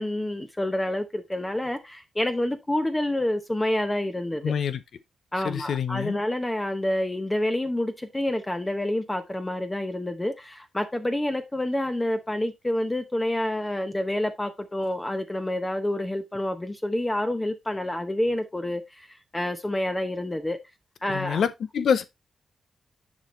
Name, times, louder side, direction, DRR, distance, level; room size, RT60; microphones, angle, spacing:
voice 1, 0.0-4.5 5.3-20.6 21.0-21.4, left 1 dB, 15° left, 0.8 m, -28 dB
voice 2, 4.4-4.8 5.4-6.2 21.1-22.0, left 7 dB, 75° left, 0.7 m, -26 dB
7.3 x 5.1 x 3.1 m
cardioid pair, 80°, 0 cm